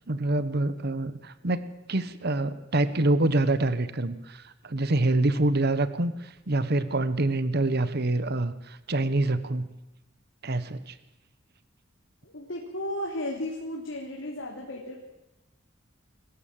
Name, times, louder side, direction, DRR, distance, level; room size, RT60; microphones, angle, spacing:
voice 1, 0.1-1.6 1.9-9.7 10.4-10.9, right 2 dB, 55° right, 13 dB, 1.2 m, -26 dB
voice 2, 12.2-15.0, left 1 dB, 85° left, -1 dB, 3.5 m, -34 dB
26.0 x 14.5 x 7.5 m, 0.99 s
head